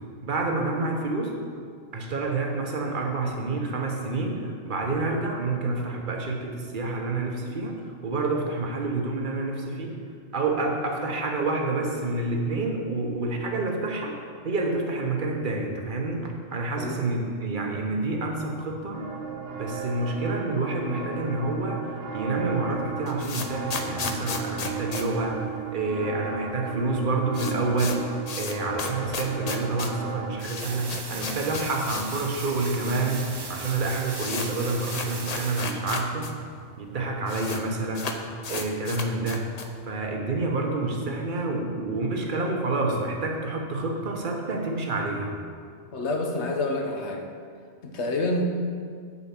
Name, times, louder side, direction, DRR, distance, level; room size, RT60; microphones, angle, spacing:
voice 1, 0.2-1.4 1.9-10.0 10.3-14.2 14.4-19.0 19.6-28.1 28.4-36.3 36.8-38.1 38.5-39.5 39.9-45.4, right 3 dB, 45° right, 1 dB, 1.1 m, -28 dB
sound 1, 18.9-30.3, right 5 dB, 85° right, 1.3 m, -35 dB
sound 2, 22.8-26.0 26.3-26.4 26.6-26.7 27.0-32.2 32.5-32.6 33.3-33.4 33.6-36.3 36.6-36.7 36.9-37.6 37.9-39.8, left 4 dB, 45° left, 0.6 m, -34 dB
sound 3, 30.6-35.6, right 3 dB, 30° right, 0.5 m, -38 dB
voice 2, 45.9-47.2 47.8-48.4, left 2 dB, 65° left, 3 dB, 1.2 m, -28 dB
7.0 x 5.6 x 7.4 m, 2.2 s
omnidirectional pair, 1.3 m